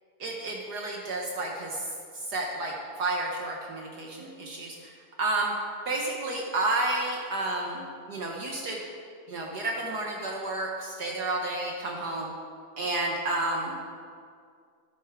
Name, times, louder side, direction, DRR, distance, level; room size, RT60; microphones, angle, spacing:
voice 1, 0.2-4.9 5.2-5.5 5.9-8.8 9.3-12.3 12.8-13.8, right 2 dB, 55° right, -1 dB, 1.6 m, -31 dB
12.5 x 10.5 x 3.6 m, 2.2 s
omnidirectional pair, 2.2 m